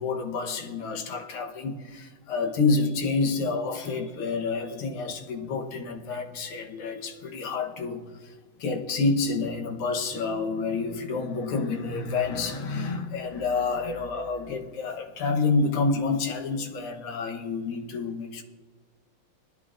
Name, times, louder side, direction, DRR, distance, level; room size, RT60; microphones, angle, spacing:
voice 1, 0.0-18.4, left 4 dB, 80° left, 4 dB, 1.9 m, -28 dB
20.5 x 11.0 x 2.5 m, 1.4 s
omnidirectional pair, 2.4 m